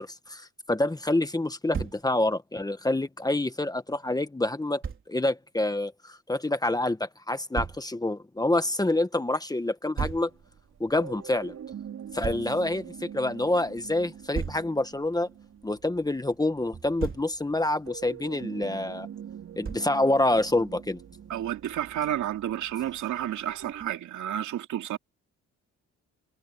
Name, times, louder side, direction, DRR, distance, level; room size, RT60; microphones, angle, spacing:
voice 1, 0.0-10.3 10.8-11.6 12.1-15.3 15.6-19.1 19.6-21.0, left 2 dB, 10° left, 1.5 m, -27 dB
Thump thud, 1.7-2.0 4.8-5.0 7.6-7.8 10.0-10.3 12.2-12.5 14.3-14.7 16.7-17.3 19.6-20.0, right 6 dB, 40° right, 4.2 m, -33 dB
sound 1, 10.1-24.0, right 9 dB, 60° right, 5.2 m, -44 dB
voice 2, 21.3-25.0, right 11 dB, 75° right, 2.7 m, -31 dB
cardioid pair, 90°, 30 cm